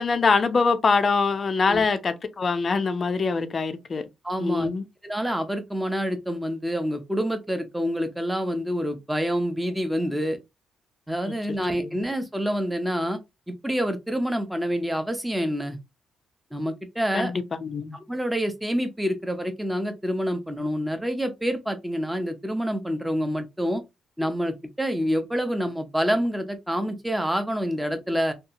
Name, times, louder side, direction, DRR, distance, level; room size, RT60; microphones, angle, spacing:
voice 1, 0.0-4.0 4.4-4.9 11.3-11.4 17.1-18.0, left 4 dB, 40° left, 0.4 m, -24 dB
voice 2, 4.2-4.7 5.0-10.4 11.1-13.2 13.5-15.8 16.5-17.3 17.9-23.8 24.2-28.3, equal, 5° right, 0.6 m, -27 dB
2.7 x 2.3 x 2.6 m
cardioid pair, 90°, 0 cm